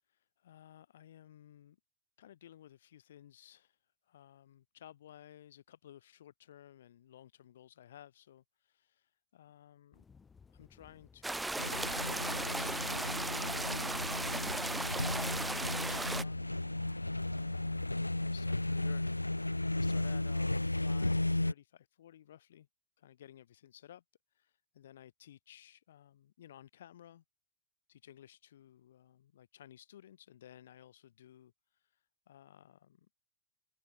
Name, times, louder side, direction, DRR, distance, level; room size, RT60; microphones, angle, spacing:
voice 1, 0.1-1.8 2.2-10.0 10.5-11.7 12.1-14.0 14.5-16.4 16.7-22.7 23.0-24.0 24.3-27.2 27.9-33.1, left 11 dB, 60° left, 2.3 m, -57 dB
sound 1, 9.9-17.9, left 5 dB, 15° left, 3.0 m, -60 dB
sound 2, 11.2-16.2, right 2 dB, 5° right, 0.6 m, -36 dB
sound 3, 11.6-21.5, left 2 dB, 85° left, 0.3 m, -34 dB
open air
figure-of-eight pair, 90°, 0 cm